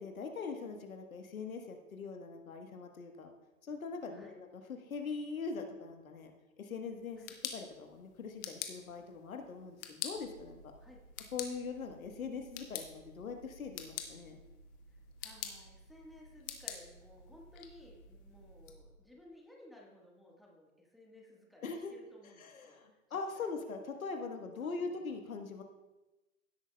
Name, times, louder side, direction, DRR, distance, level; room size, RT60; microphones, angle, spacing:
voice 1, 0.0-3.3 3.6-6.3 6.6-10.6 11.3-14.4 21.6-21.9 22.4-25.6, left 4 dB, 75° left, 5 dB, 1.4 m, -42 dB
sound 1, 7.0-18.7, left 10 dB, 15° left, 0.4 m, -47 dB
sound 2, 10.1-19.0, right 1 dB, 85° right, 2.0 m, -58 dB
voice 2, 14.9-23.7 24.6-25.0, left 1 dB, ahead, -3 dB, 1.4 m, -58 dB
15.5 x 8.3 x 2.2 m, 1.1 s
hypercardioid pair, 115°, 41 cm